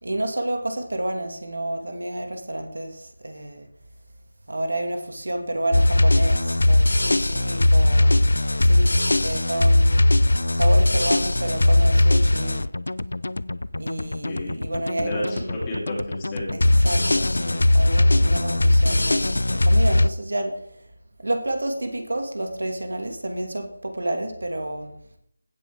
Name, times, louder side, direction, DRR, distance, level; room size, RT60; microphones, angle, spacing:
voice 1, 0.0-3.7 4.5-8.3 8.6-9.0 9.2-9.9 10.5-12.6 13.8-15.4 16.8-20.6 21.2-24.9, right 1 dB, 80° right, 5 dB, 1.9 m, -30 dB
sound 1, 5.7-20.1, left 1 dB, 80° left, 0.4 m, -19 dB
voice 2, 7.6-8.2 14.2-14.6 15.0-16.8, left 1 dB, 15° left, -5 dB, 3.2 m, -33 dB
16.0 x 6.0 x 3.5 m, 0.68 s
figure-of-eight pair, 165°, 0 cm